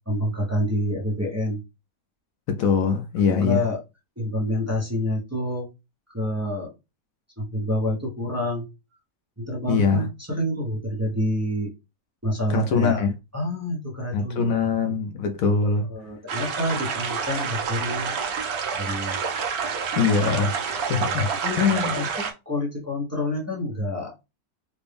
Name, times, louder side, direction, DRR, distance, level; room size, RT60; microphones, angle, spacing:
voice 1, 0.1-1.6 3.3-3.8 4.2-5.7 6.1-6.7 7.4-8.7 9.4-11.7 12.2-13.0 13.3-14.7 15.9-18.1 18.7-19.2 21.0-24.1, left 1 dB, 15° right, 0.5 m, -28 dB
voice 2, 2.5-3.6 9.7-10.1 12.5-13.1 14.1-15.9 20.0-21.3 21.6-22.0, left 5 dB, 70° left, 0.9 m, -23 dB
sound 1, 16.3-22.3, right 6 dB, 70° right, 1.2 m, -28 dB
4.2 x 2.2 x 3.3 m
omnidirectional pair, 1.7 m